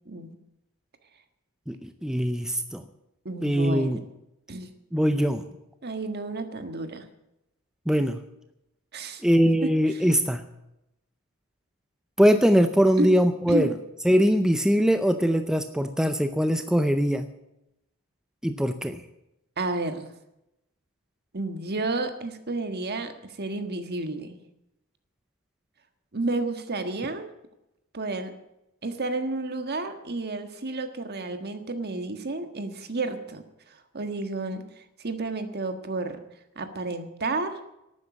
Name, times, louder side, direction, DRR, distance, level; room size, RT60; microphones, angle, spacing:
voice 1, 0.1-0.4 3.2-4.0 4.5-4.7 5.8-7.1 8.9-9.2 13.0-13.1 13.5-13.7 19.6-20.1 21.3-24.4 26.1-27.3 27.9-28.3 28.8-33.4 33.9-36.2 36.5-37.6, right 2 dB, 50° right, 8 dB, 1.5 m, -31 dB
voice 2, 1.7-2.8 3.4-4.0 4.9-5.4 7.9-8.2 9.2-10.4 12.2-13.7 14.0-17.3 18.4-19.0, equal, 5° right, 8 dB, 0.6 m, -22 dB
12.0 x 9.4 x 9.3 m, 0.88 s
head